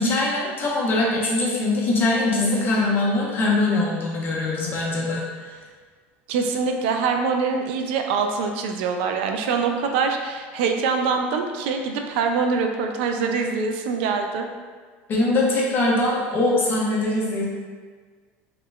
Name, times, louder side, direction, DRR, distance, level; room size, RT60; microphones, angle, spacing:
voice 1, 0.0-5.5 15.1-17.4, left 2 dB, 35° left, -4 dB, 0.8 m, -22 dB
voice 2, 6.3-14.5, right 5 dB, 75° right, 4 dB, 0.3 m, -24 dB
3.0 x 2.9 x 2.3 m, 1.5 s
supercardioid pair, 105°, 6 cm